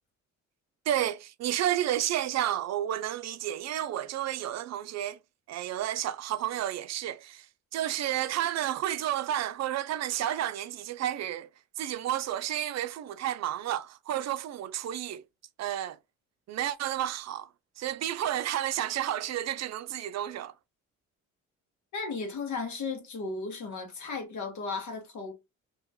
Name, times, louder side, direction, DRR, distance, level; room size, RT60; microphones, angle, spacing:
voice 1, 0.9-5.2 5.5-7.5 7.7-11.5 11.8-15.2 15.6-16.0 16.5-17.5 17.8-20.5, right 12 dB, 60° right, 0.5 m, -31 dB
voice 2, 21.9-25.3, left 4 dB, 70° left, 1.4 m, -35 dB
3.1 x 2.9 x 3.5 m
cardioid pair, 90°, 30 cm